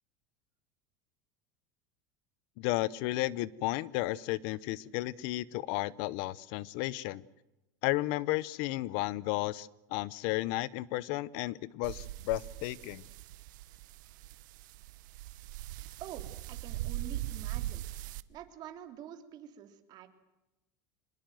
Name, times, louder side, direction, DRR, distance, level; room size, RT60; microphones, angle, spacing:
voice 1, 2.6-7.2 7.8-13.0, left 18 dB, 60° left, 22 dB, 0.8 m, -33 dB
sound 1, 11.8-18.2, right 15 dB, 80° right, 1.0 m, -41 dB
voice 2, 16.0-17.9 18.3-20.1, right 10 dB, 40° right, 7 dB, 3.2 m, -47 dB
25.0 x 21.0 x 7.7 m, 0.98 s
supercardioid pair, 150°, 10 cm